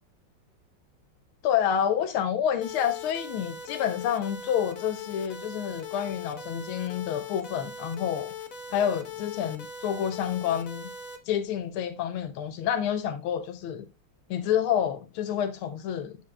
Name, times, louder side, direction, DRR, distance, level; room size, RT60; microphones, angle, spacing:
voice 1, 1.4-8.3 8.7-10.9 11.3-13.9 14.3-16.2, left 9 dB, 85° left, 1.6 m, -28 dB
sound 1, 2.6-11.2, left 5 dB, 50° left, 1.2 m, -40 dB
10.0 x 7.2 x 2.3 m
omnidirectional pair, 2.3 m